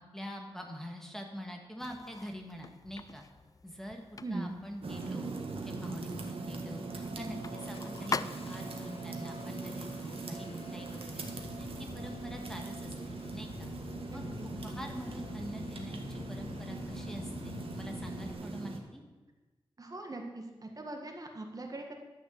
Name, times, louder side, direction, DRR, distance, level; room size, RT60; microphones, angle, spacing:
voice 1, 0.1-3.2 3.6-4.0 4.3-5.3 5.6-13.7 14.1-19.0, equal, 5° left, 2 dB, 1.6 m, -45 dB
sound 1, 1.8-8.9, left 4 dB, 35° left, 0.4 m, -43 dB
Engine starting, 2.0-2.1 2.8-3.1 3.8-4.2 4.5-5.0 5.5-6.0 6.4-6.6 6.9-18.3, left 5 dB, 75° left, 0.8 m, -48 dB
voice 2, 4.2-4.5 14.1-14.2 19.8-21.9, right 2 dB, 40° right, 3 dB, 1.6 m, -40 dB
sound 2, 4.8-18.8, right 3 dB, 70° right, 1.7 m, -41 dB
11.5 x 6.4 x 8.2 m, 1.2 s
wide cardioid pair, 100°, 10 cm